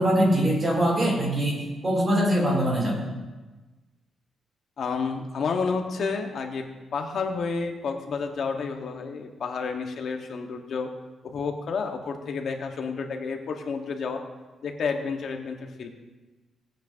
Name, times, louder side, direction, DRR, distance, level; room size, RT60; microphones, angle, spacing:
voice 1, 0.0-3.0, equal, 25° right, -2 dB, 2.7 m, -23 dB
voice 2, 4.8-6.6 6.9-10.9 11.2-14.2 14.6-15.9, left 5 dB, 50° left, 4 dB, 1.0 m, -30 dB
16.5 x 9.0 x 2.6 m, 1.2 s
wide cardioid pair, 180°, 0 cm